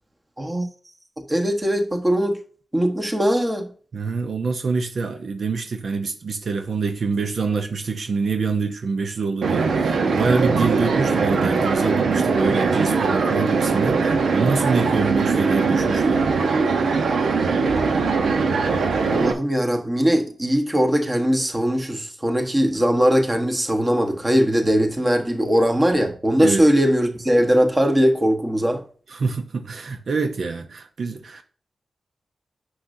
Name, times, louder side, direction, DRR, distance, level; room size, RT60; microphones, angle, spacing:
voice 1, 1.3-2.4 2.7-3.7 19.1-28.8, equal, 20° right, 1.3 m, -20 dB
voice 2, 3.9-16.2 26.4-26.6 29.1-31.4, right 4 dB, 60° right, 0.7 m, -25 dB
sound 1, 9.4-19.3, right 4 dB, 90° right, 1.0 m, -21 dB
9.7 x 6.5 x 2.7 m
wide cardioid pair, 125°, 0 cm